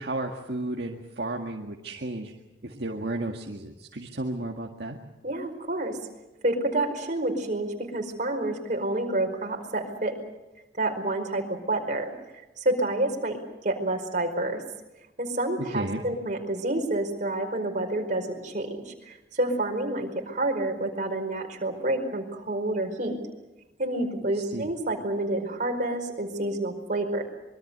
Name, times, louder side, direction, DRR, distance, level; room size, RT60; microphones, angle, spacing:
voice 1, 0.0-2.3 2.6-5.0 15.6-16.0 24.2-24.7, right 2 dB, 65° right, 1 dB, 1.9 m, -33 dB
voice 2, 5.2-6.0 6.4-10.1 10.8-12.1 12.6-13.4 13.6-14.6 15.2-23.2 23.8-27.2, right 1 dB, 45° right, 3 dB, 4.9 m, -28 dB
25.5 x 23.0 x 6.8 m, 1.0 s
head